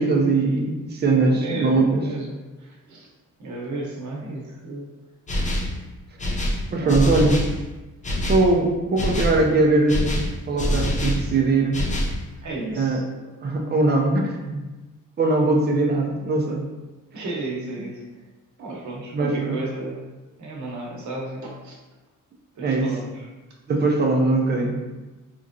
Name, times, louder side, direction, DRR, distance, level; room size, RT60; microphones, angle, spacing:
voice 1, 0.0-2.0 6.7-7.4 8.2-11.8 12.8-13.0 13.4-14.6 15.2-16.6 19.1-19.6 22.6-22.9 23.7-24.8, right 3 dB, 30° right, 1 dB, 0.5 m, -21 dB
voice 2, 1.3-3.1 3.4-4.9 6.8-7.4 12.4-13.0 17.1-18.0 18.6-20.0 20.4-21.8 22.5-23.3, right 2 dB, 65° right, -2 dB, 0.9 m, -33 dB
sound 1, 5.3-5.8 6.2-7.6 8.0-8.5 9.0-9.4 9.9-11.3 11.7-12.2, left 1 dB, 25° left, 0.4 m, -25 dB
3.6 x 3.0 x 2.6 m, 1.2 s
wide cardioid pair, 165°, 32 cm